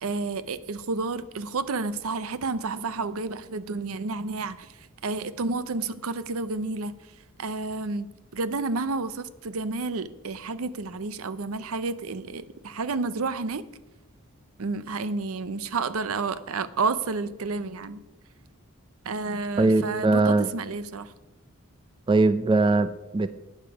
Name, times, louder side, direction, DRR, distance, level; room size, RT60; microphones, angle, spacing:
voice 1, 0.0-4.7 5.0-6.9 7.4-8.1 8.3-13.6 14.6-18.0 19.0-21.1, right 3 dB, 75° right, 14 dB, 0.6 m, -30 dB
voice 2, 19.6-20.5 22.1-23.3, right 3 dB, 20° right, 12 dB, 0.3 m, -21 dB
12.0 x 9.0 x 4.8 m, 1.0 s
head